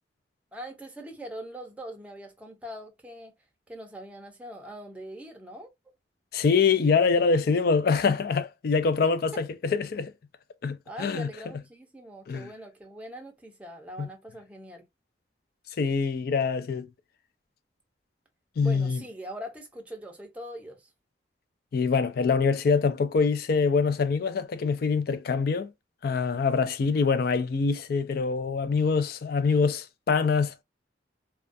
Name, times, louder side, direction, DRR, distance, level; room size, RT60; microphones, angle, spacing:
voice 1, 0.5-3.3 3.7-5.7 10.9-14.8 18.6-20.9, right 1 dB, 5° right, 0.5 m, -42 dB
voice 2, 6.3-10.1 10.6-11.3 12.3-12.5 14.0-14.1 15.8-16.9 18.6-19.0 21.7-25.7 26.0-30.6, left 5 dB, 55° left, 0.3 m, -24 dB
2.3 x 2.2 x 2.5 m
head